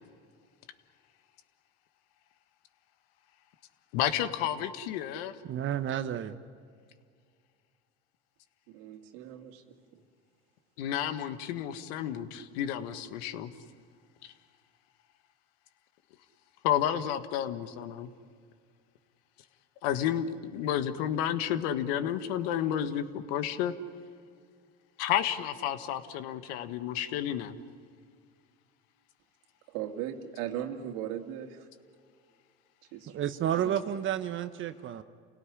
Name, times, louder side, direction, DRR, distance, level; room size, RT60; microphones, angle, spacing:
voice 1, 3.9-5.3 10.8-13.5 16.6-18.1 19.8-23.7 25.0-27.5, left 10 dB, 80° left, 11 dB, 1.7 m, -31 dB
voice 2, 5.4-6.4 33.1-35.0, right 10 dB, 40° right, 10 dB, 1.0 m, -31 dB
voice 3, 8.7-9.8 29.7-31.7 32.9-33.3 33.6-33.8, right 10 dB, 75° right, 5 dB, 2.5 m, -38 dB
29.0 x 18.0 x 10.0 m, 2.1 s
supercardioid pair, 110°, 30 cm